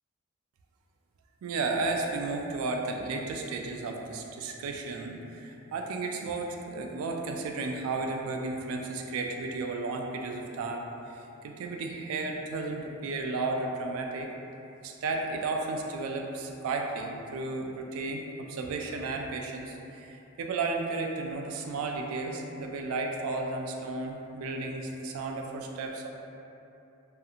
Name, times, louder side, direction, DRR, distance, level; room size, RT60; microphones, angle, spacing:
voice 1, 1.4-14.3 14.8-26.1, right 3 dB, 70° right, 2 dB, 0.3 m, -33 dB
2.4 x 2.4 x 2.7 m, 2.8 s
head